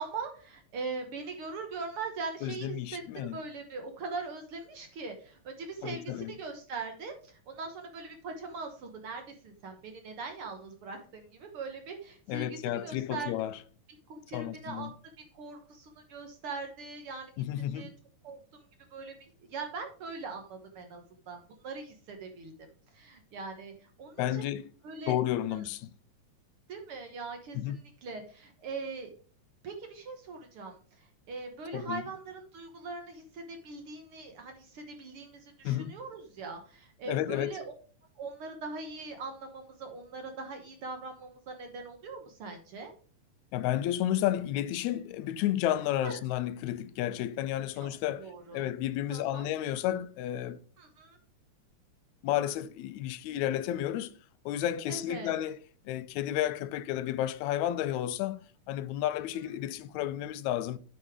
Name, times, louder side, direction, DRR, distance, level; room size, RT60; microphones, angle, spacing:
voice 1, 0.0-13.3 14.1-14.9 15.3-17.3 17.7-17.9 18.2-18.6 18.9-19.1 19.5-22.5 22.9-24.5 24.8-25.2 25.5-25.6 26.7-29.1 29.6-37.7 38.2-42.9 46.0-46.2 47.8-47.9 48.2-48.7 49.1-49.5 50.8-51.2 54.9-55.3, right 4 dB, 55° right, 1.7 m, -41 dB
voice 2, 2.4-3.4 5.8-6.3 12.3-13.6 14.3-14.9 17.4-17.9 24.2-24.7 25.1-25.9 27.6-27.8 31.7-32.0 35.6-35.9 37.1-37.5 43.5-48.3 48.5-50.6 52.2-54.1 54.5-55.6 55.9-60.8, left 12 dB, 80° left, 1.8 m, -32 dB
8.6 x 5.3 x 4.8 m
omnidirectional pair, 3.5 m